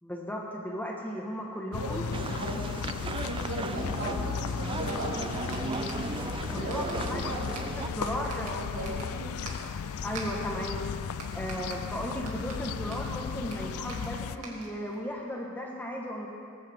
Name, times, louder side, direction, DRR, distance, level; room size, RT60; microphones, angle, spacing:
voice 1, 0.0-2.0 6.5-8.6 10.0-10.8 11.3-16.3, equal, 10° left, -1 dB, 1.3 m, -36 dB
sound 1, 1.7-14.4, left 6 dB, 70° left, 0.4 m, -35 dB
voice 2, 1.8-2.7 3.0-5.1 5.4-5.6 6.6-7.7 8.0-9.3, right 1 dB, 70° right, -5 dB, 3.7 m, -38 dB
sound 2, 2.1-7.9, right 4 dB, 25° right, 0.3 m, -36 dB
sound 3, 4.8-15.0, right 3 dB, 85° right, 2.5 m, -47 dB
18.5 x 15.0 x 3.6 m, 2.4 s
head